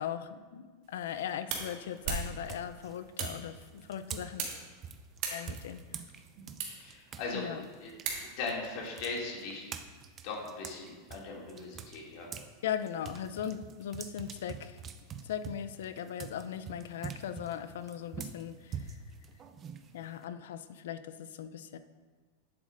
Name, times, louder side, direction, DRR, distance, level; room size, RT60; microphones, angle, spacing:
voice 1, 0.0-4.5 5.3-6.0 7.3-7.7 12.6-14.8 15.2-19.0 19.9-21.8, left 9 dB, 80° left, 12 dB, 0.5 m, -39 dB
sound 1, 0.8-8.7, right 5 dB, 55° right, 1.7 m, -41 dB
sound 2, 1.6-1.9 2.5-7.3 7.6-12.5 12.8-20.2, right 7 dB, 25° right, 0.5 m, -45 dB
voice 2, 6.8-7.4 7.8-9.7 10.2-12.3, left 3 dB, 55° left, -2 dB, 2.4 m, -39 dB
10.5 x 7.9 x 2.6 m, 1.4 s
supercardioid pair, 140°, 0 cm